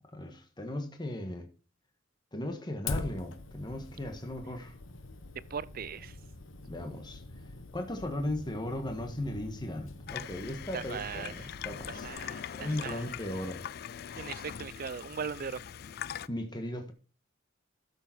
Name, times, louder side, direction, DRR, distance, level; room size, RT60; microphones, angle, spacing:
voice 1, 0.1-1.5 2.3-4.7 6.7-7.2 7.7-12.1 12.5-13.7 16.3-16.9, left 1 dB, 20° left, 1.5 m, -37 dB
Fire, 2.9-12.1, left 3 dB, 80° left, 1.1 m, -44 dB
voice 2, 5.5-6.2 10.7-11.3 11.9-13.0 14.2-15.6, right 6 dB, 50° right, 0.5 m, -39 dB
Water tap faucet / Sink (filling or washing), 10.1-16.3, left 9 dB, 55° left, 0.4 m, -42 dB
12.5 x 6.9 x 4.3 m
head